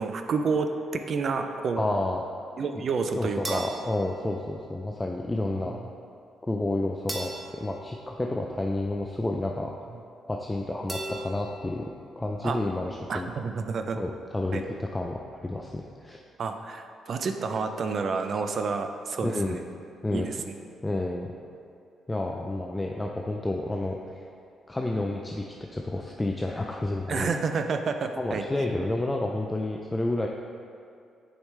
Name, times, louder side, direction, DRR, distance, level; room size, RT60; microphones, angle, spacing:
voice 1, 0.0-1.9 2.6-3.6 5.6-5.7 12.4-12.6 13.1-14.0 14.5-14.6 16.4-19.6 20.1-20.4 27.1-28.4, right 4 dB, 50° right, 6 dB, 0.4 m, -29 dB
voice 2, 1.8-2.2 3.1-5.8 6.4-9.7 10.3-11.9 12.2-13.3 14.0-16.2 19.2-19.6 20.0-20.3 20.8-21.3 22.1-24.2 24.7-25.4 25.7-27.3 28.2-30.3, left 2 dB, 15° left, 1 dB, 0.4 m, -30 dB
sound 1, 3.4-4.9 7.1-8.9 10.9-12.0, right 1 dB, 20° right, 0.9 m, -40 dB
6.1 x 4.9 x 3.2 m, 2.4 s
cardioid pair, 90°, 0 cm